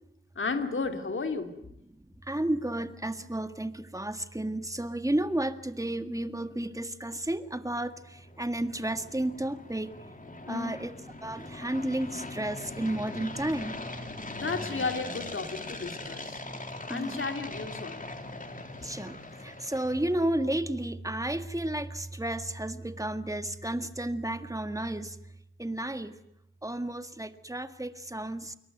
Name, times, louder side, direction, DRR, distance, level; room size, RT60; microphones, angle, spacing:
voice 1, 0.3-1.6 10.5-10.8 14.3-16.4 16.9-18.1, left 4 dB, 75° left, 6 dB, 2.9 m, -33 dB
voice 2, 2.0-9.9 10.5-13.8 16.3-16.6 16.9-17.2 18.8-25.2 25.6-26.2 26.6-28.5, right 1 dB, 15° right, 9 dB, 1.8 m, -32 dB
sound 1, 8.0-20.3, left 2 dB, 40° left, 3.4 m, -41 dB
26.5 x 22.5 x 9.3 m, 0.79 s
wide cardioid pair, 70°, 20 cm